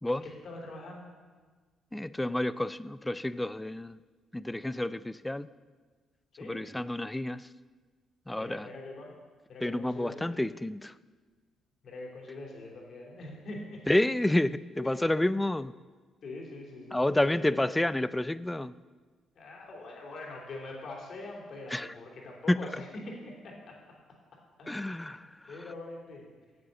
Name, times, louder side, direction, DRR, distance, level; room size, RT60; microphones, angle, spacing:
voice 1, 0.1-1.1 6.3-6.7 8.3-9.2 9.5-10.4 11.8-13.8 14.8-15.0 16.2-17.7 19.3-23.8 24.6-24.9 25.2-26.3, left 2 dB, 60° left, -1 dB, 3.2 m, -43 dB
voice 2, 1.9-4.0 4.3-5.5 6.4-7.5 8.3-8.7 9.6-10.9 13.9-15.8 16.9-18.8 21.7-21.9 22.5-22.6 24.7-25.5, left 1 dB, 10° left, 16 dB, 0.4 m, -29 dB
9.6 x 7.8 x 6.7 m, 1.4 s
cardioid pair, 75°, 0 cm